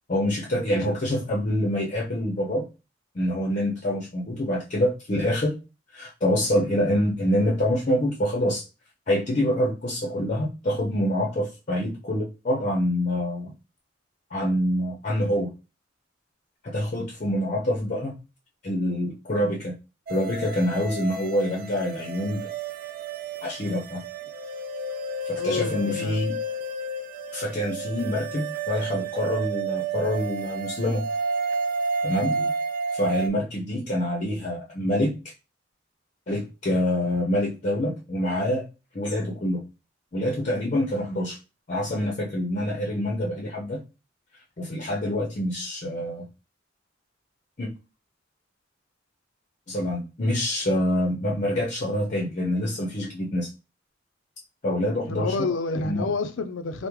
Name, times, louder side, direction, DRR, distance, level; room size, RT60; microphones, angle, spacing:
voice 1, 0.1-2.7 3.1-5.6 5.9-8.6 9.1-13.5 14.3-15.5 16.6-18.2 18.6-19.8 20.1-22.5 23.4-24.0 25.3-26.4 27.3-31.1 32.0-32.4 32.9-35.2 36.3-38.6 38.9-39.6 40.1-41.4 41.7-43.8 44.6-46.3 47.6-47.7 49.7-53.5 54.6-55.5 55.8-56.1, left 1 dB, 40° left, 0.6 m, -26 dB
sound 1, 20.1-33.3, right 3 dB, 45° right, 0.3 m, -31 dB
voice 2, 25.4-26.2 32.3-32.5 55.0-56.9, left 3 dB, 85° left, 0.5 m, -29 dB
3.5 x 2.0 x 3.0 m
head